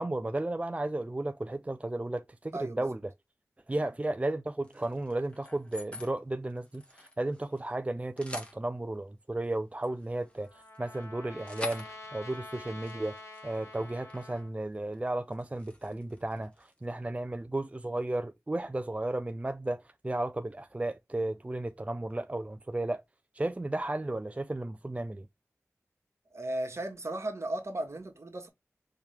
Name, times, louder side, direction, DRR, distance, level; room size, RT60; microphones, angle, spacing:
voice 1, 0.0-3.1 3.7-11.9 12.1-13.2 13.4-23.0 23.3-25.3, right 2 dB, 25° right, 0.4 m, -34 dB
voice 2, 2.5-2.8 26.3-28.5, right 1 dB, 55° right, 1.5 m, -35 dB
sound 1, 4.6-6.1 6.5-7.7 8.0-8.6 9.4-14.4 14.7-15.0 15.3-16.8, left 1 dB, 20° left, 1.4 m, -47 dB
Trumpet, 9.8-14.5, left 2 dB, 60° left, 1.8 m, -47 dB
4.4 x 3.6 x 3.3 m
wide cardioid pair, 55°, 5 cm